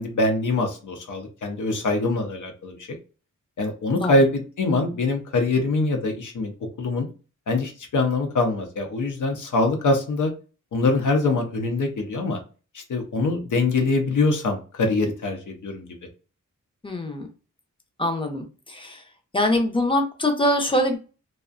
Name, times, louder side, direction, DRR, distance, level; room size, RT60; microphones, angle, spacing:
voice 1, 0.0-2.8 3.6-6.5 6.8-7.1 7.5-10.3 10.7-12.4 12.7-15.9, left 2 dB, 75° left, 3 dB, 0.6 m, -23 dB
voice 2, 16.8-17.3 18.0-19.0 19.3-21.0, left 1 dB, 15° left, 4 dB, 0.5 m, -23 dB
2.5 x 2.0 x 2.4 m, 0.34 s
wide cardioid pair, 140°, 31 cm